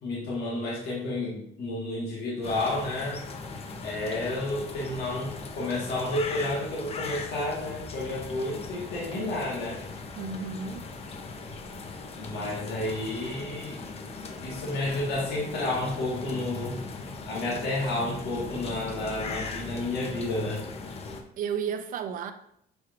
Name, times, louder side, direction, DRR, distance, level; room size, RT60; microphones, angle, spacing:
voice 1, 0.0-3.2 3.8-9.8 12.2-13.8 14.4-16.8 17.3-20.7, left 2 dB, 70° left, 1.4 m, -31 dB
sound 1, 2.4-21.2, left 3 dB, 35° left, 0.6 m, -39 dB
voice 2, 10.2-10.9 21.4-22.3, right 7 dB, 55° right, 0.5 m, -32 dB
5.9 x 3.1 x 2.5 m
cardioid pair, 110°, 17 cm